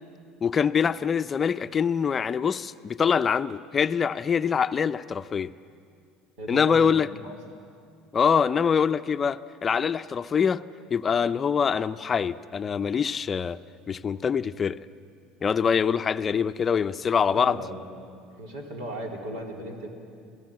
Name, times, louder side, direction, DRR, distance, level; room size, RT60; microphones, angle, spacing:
voice 1, 0.4-5.5 6.5-7.1 8.1-10.6 10.9-13.6 13.9-14.8 15.4-17.6, left 6 dB, 35° left, 12 dB, 0.6 m, -24 dB
voice 2, 6.4-7.3 17.3-17.9 18.4-19.9, equal, 75° right, 1 dB, 3.9 m, -37 dB
27.5 x 17.0 x 7.7 m, 2.3 s
hypercardioid pair, 80°, 0 cm